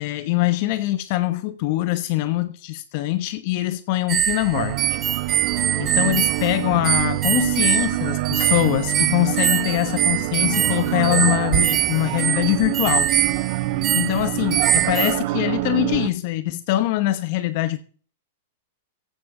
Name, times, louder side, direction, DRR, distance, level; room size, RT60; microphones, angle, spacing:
voice 1, 0.0-4.8 5.8-13.1 13.9-17.8, left 16 dB, 55° left, 0.9 m, -23 dB
sound 1, 4.1-15.2, right 10 dB, 30° right, 1.0 m, -23 dB
sound 2, 4.5-16.1, right 18 dB, 55° right, 0.7 m, -26 dB
sound 3, 5.9-7.3 7.8-10.6, left 7 dB, 75° left, 3.1 m, -48 dB
15.0 x 10.5 x 3.7 m
hypercardioid pair, 120°, 0 cm